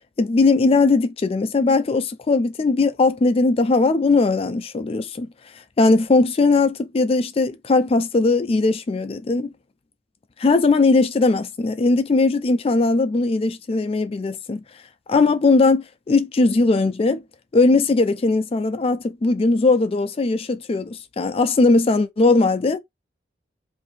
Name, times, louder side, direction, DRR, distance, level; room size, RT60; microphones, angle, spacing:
voice 1, 0.2-5.3 5.8-9.5 10.4-14.6 15.1-17.2 17.5-22.8, left 3 dB, 30° left, 0.4 m, -19 dB
2.7 x 2.6 x 4.0 m
head